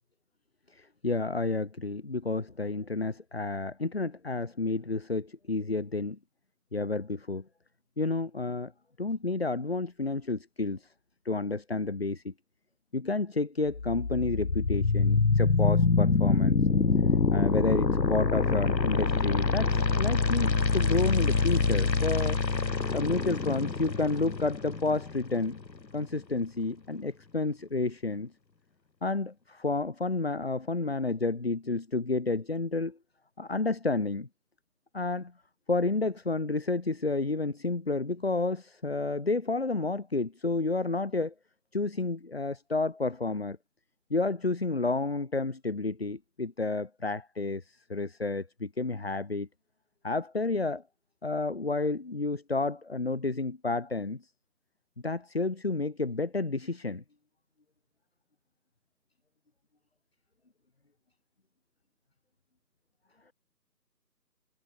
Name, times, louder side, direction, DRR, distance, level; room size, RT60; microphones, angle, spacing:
voice 1, 0.7-6.2 6.7-7.4 8.0-8.7 9.0-10.9 11.2-12.3 12.9-16.6 17.3-22.4 22.9-25.6 25.9-28.3 29.0-33.0 33.4-34.3 34.9-35.3 35.7-41.3 41.7-43.6 44.1-49.5 50.0-50.8 51.2-54.2 55.0-57.0, left 3 dB, 35° left, 2.5 m, -30 dB
sound 1, 13.7-25.7, left 4 dB, 85° left, 1.2 m, -26 dB
figure-of-eight pair, 165°, 50 cm